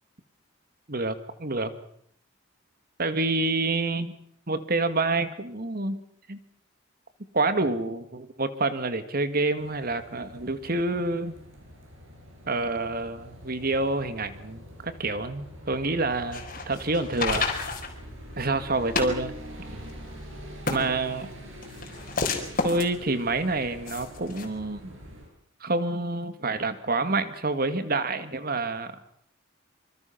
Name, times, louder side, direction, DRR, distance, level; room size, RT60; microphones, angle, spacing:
voice 1, 0.9-1.7 3.0-4.1 4.5-6.0 6.3-6.4 7.3-11.4 12.5-17.6 18.4-19.4 19.7-19.9 20.7-21.3 22.6-25.0 25.6-29.0, right 2 dB, 45° right, 10 dB, 2.0 m, -28 dB
sound 1, 9.6-25.3, equal, 75° right, 7.9 m, -45 dB
sound 2, 16.1-24.5, left 4 dB, 45° left, 4.3 m, -32 dB
26.0 x 25.0 x 6.0 m, 0.65 s
head